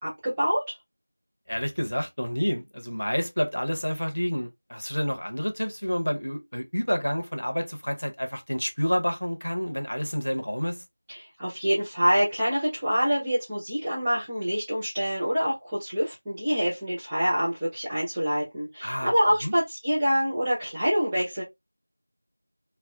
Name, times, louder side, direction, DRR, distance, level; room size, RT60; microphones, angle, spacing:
voice 1, 0.0-0.6 11.1-21.4, equal, 5° right, 0.4 m, -26 dB
voice 2, 1.5-10.8 18.8-19.1 19.4-19.5, equal, 60° left, 0.8 m, -29 dB
3.3 x 2.1 x 2.3 m
figure-of-eight pair, 175°, 0 cm